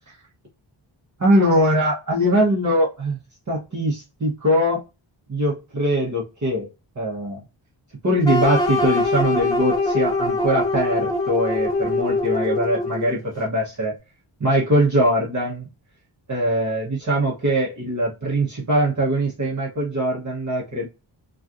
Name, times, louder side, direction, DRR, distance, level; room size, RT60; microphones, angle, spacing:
voice 1, 1.2-3.2 3.5-4.8 5.3-6.7 7.0-7.4 8.0-13.9 14.4-15.7 16.3-20.9, equal, 35° right, -5 dB, 1.1 m, -22 dB
sound 1, 8.2-13.2, left 2 dB, 10° left, 0.9 m, -23 dB
3.0 x 2.5 x 2.5 m, 0.27 s
wide cardioid pair, 160°, 48 cm